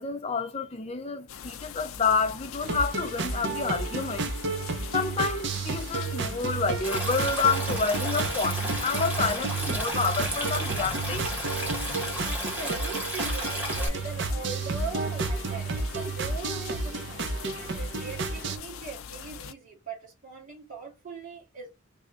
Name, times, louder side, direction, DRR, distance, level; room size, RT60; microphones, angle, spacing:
voice 1, 0.0-4.3 4.9-11.3, left 5 dB, 30° left, 0.5 m, -29 dB
sound 1, 1.3-19.5, left 7 dB, 80° left, 0.4 m, -42 dB
sound 2, 2.6-18.6, right 4 dB, 55° right, 0.5 m, -32 dB
Stream, 6.8-13.9, equal, 10° right, 1.0 m, -33 dB
voice 2, 11.9-21.7, right 5 dB, 40° right, 1.9 m, -41 dB
3.5 x 2.1 x 3.6 m
head